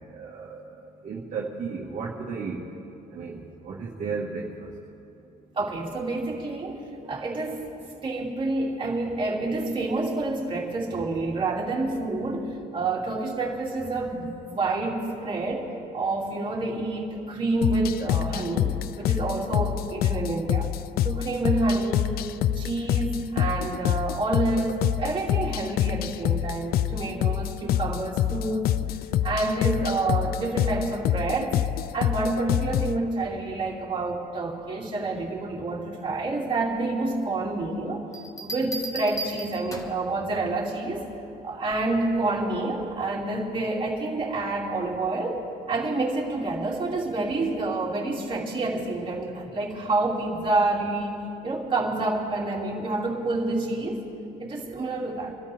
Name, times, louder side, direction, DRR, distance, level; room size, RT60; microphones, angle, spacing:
voice 1, 0.1-0.6 1.0-2.6 3.1-4.7, right 5 dB, 50° right, -4 dB, 1.7 m, -34 dB
voice 2, 5.5-6.8 7.1-7.7 8.0-20.7 21.0-28.7 29.2-31.6 31.9-38.0 38.4-41.0 41.4-45.4 45.7-51.2 51.4-54.0 54.4-55.3, right 2 dB, 30° right, -3 dB, 2.7 m, -28 dB
sound 1, 17.6-33.0, left 12 dB, 65° left, 0.5 m, -26 dB
Bell, 38.1-40.1 41.7-42.0, right 1 dB, 20° left, 1.4 m, -36 dB
25.5 x 12.5 x 3.5 m, 2.7 s
cardioid pair, 110°, 17 cm